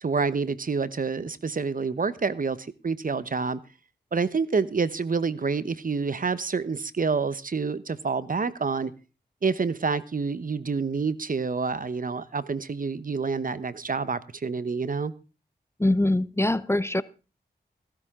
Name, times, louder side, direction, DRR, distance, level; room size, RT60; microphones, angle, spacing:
voice 1, 0.0-3.6 4.1-8.9 9.4-15.1, right 4 dB, 50° right, 1.0 m, -28 dB
voice 2, 15.8-17.0, left 1 dB, 15° left, 0.8 m, -23 dB
15.5 x 12.5 x 3.7 m
cardioid pair, 40°, 18 cm